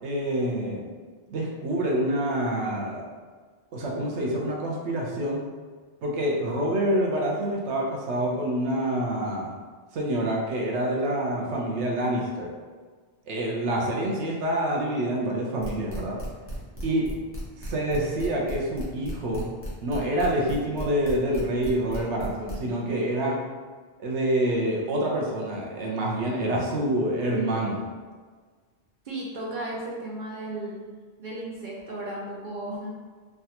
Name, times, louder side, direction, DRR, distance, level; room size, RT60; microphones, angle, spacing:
voice 1, 0.0-0.9 1.3-3.0 3.7-5.4 6.0-9.5 9.9-12.5 13.3-16.2 16.8-17.1 17.6-19.5 19.8-23.4 24.0-27.8, right 1 dB, 90° right, -2 dB, 0.9 m, -27 dB
sound 1, 15.6-22.5, equal, 15° left, 0.7 m, -36 dB
voice 2, 29.0-30.8 31.2-32.9, right 1 dB, 55° right, -4 dB, 0.6 m, -34 dB
3.3 x 2.3 x 2.7 m, 1.5 s
omnidirectional pair, 1.1 m